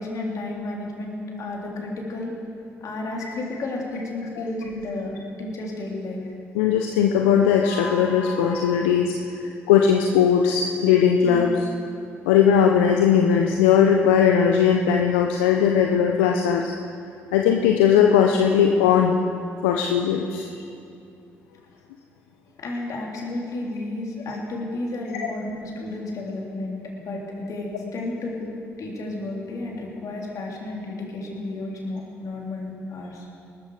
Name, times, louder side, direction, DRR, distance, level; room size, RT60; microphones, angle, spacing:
voice 1, 0.0-2.3 2.8-6.2 11.2-11.5 22.6-28.5 28.8-33.3, left 2 dB, 60° left, -1 dB, 3.5 m, -32 dB
voice 2, 6.5-9.1 9.4-11.7 12.2-16.7 17.3-19.2 19.6-20.5, left 8 dB, 85° left, 2 dB, 0.7 m, -19 dB
19.0 x 14.0 x 5.0 m, 2.5 s
hypercardioid pair, 50°, 7 cm